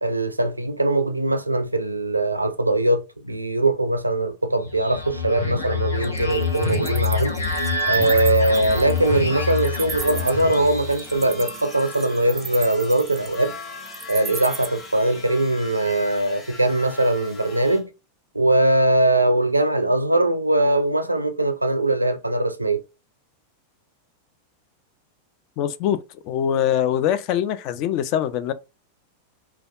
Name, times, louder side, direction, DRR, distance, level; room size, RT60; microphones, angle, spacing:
voice 1, 0.0-7.3 7.8-13.6 14.1-17.9 18.3-22.8, right 2 dB, 85° right, 0.4 m, -21 dB
sound 1, 4.6-11.3, left 4 dB, 75° left, 0.8 m, -26 dB
Wild animals, 6.0-14.7, right 5 dB, 20° right, 0.5 m, -35 dB
sound 2, 8.2-17.8, left 3 dB, 20° left, 1.0 m, -41 dB
voice 2, 25.6-26.0 26.2-28.5, left 10 dB, 40° left, 0.3 m, -23 dB
3.2 x 2.2 x 2.3 m
figure-of-eight pair, 90°, 0 cm